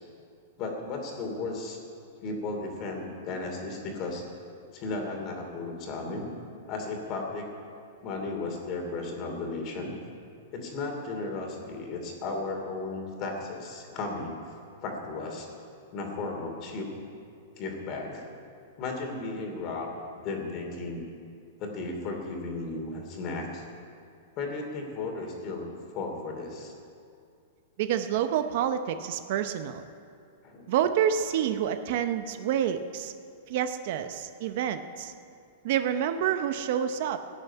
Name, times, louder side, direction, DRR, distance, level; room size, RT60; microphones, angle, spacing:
voice 1, 0.6-1.8 2.2-4.2 4.7-6.3 6.7-7.5 8.0-9.9 10.5-14.4 14.8-15.5 15.9-16.9 17.6-18.3 18.8-19.9 20.2-21.0 21.6-23.6 24.4-25.7 25.9-26.7 30.4-30.6, left 3 dB, 35° left, 2 dB, 2.8 m, -35 dB
voice 2, 27.8-29.8 30.7-33.1 33.5-35.1 35.6-37.2, right 9 dB, 55° right, 9 dB, 0.7 m, -28 dB
17.0 x 7.2 x 9.8 m, 2.4 s
supercardioid pair, 155°, 0 cm